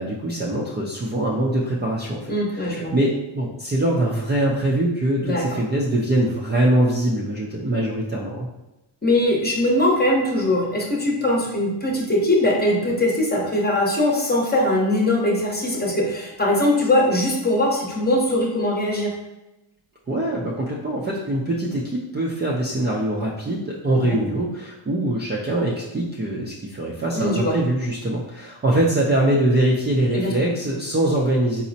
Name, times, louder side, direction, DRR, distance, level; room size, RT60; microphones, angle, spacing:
voice 1, 0.0-8.5 20.1-31.6, right 1 dB, 20° right, -4 dB, 0.4 m, -23 dB
voice 2, 2.3-2.9 5.2-5.4 9.0-19.1 24.0-24.2 27.1-27.5 30.1-30.3, left 1 dB, 20° left, -1 dB, 0.8 m, -21 dB
4.0 x 2.0 x 2.7 m, 0.96 s
cardioid pair, 75°, 50 cm